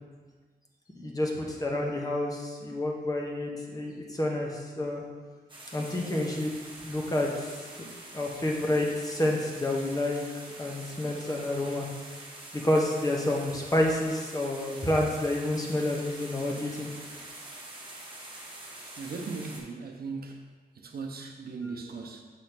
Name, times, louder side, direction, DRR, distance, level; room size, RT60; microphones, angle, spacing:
voice 1, 0.9-5.0 5.7-6.6 6.8-7.5 8.1-10.2 10.6-11.8 12.6-16.9, left 1 dB, 20° left, -1 dB, 1.0 m, -29 dB
sound 1, 5.5-19.6, right 2 dB, 30° right, 1.2 m, -45 dB
voice 2, 19.0-20.4 20.8-22.2, right 4 dB, 70° right, 2 dB, 0.7 m, -38 dB
6.8 x 3.1 x 5.9 m, 1.4 s
wide cardioid pair, 135°, 16 cm